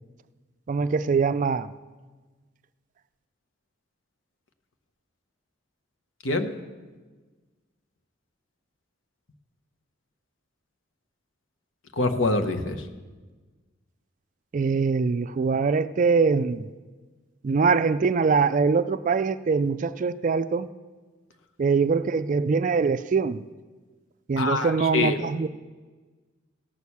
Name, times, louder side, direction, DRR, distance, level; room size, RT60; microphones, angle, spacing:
voice 1, 0.7-1.7 14.5-16.7 17.4-20.7 21.6-23.5 24.3-25.5, right 5 dB, 40° right, 14 dB, 0.3 m, -23 dB
voice 2, 6.2-6.5 12.0-12.9 24.4-25.2, left 3 dB, 75° left, 7 dB, 1.0 m, -25 dB
17.0 x 6.4 x 7.1 m, 1.3 s
head